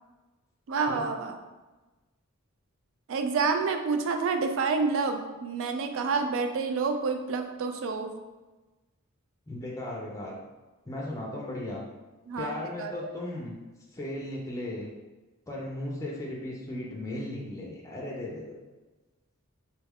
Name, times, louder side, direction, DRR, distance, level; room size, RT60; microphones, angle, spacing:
voice 1, 0.7-1.4 3.1-8.1 12.3-12.9, right 4 dB, 65° right, 6 dB, 0.4 m, -28 dB
voice 2, 9.5-10.4 10.9-11.8 12.4-13.6 13.9-14.9 15.5-18.6, left 1 dB, 15° left, -3 dB, 0.4 m, -36 dB
2.9 x 2.3 x 3.4 m, 1.2 s
head